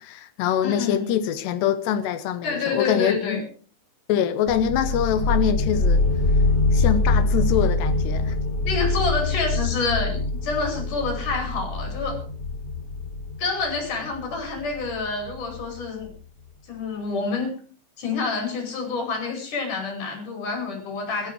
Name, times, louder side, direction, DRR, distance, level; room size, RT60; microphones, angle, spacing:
voice 1, 0.0-3.5 4.1-6.0 6.7-8.3, left 9 dB, 75° left, 2.8 m, -24 dB
voice 2, 0.6-1.1 2.4-3.4 8.6-12.2 13.4-16.1 16.7-17.5 18.0-21.3, left 4 dB, 40° left, 6.3 m, -28 dB
sound 1, 4.5-15.9, left 3 dB, 25° left, 3.9 m, -24 dB
17.0 x 14.0 x 4.7 m
omnidirectional pair, 5.6 m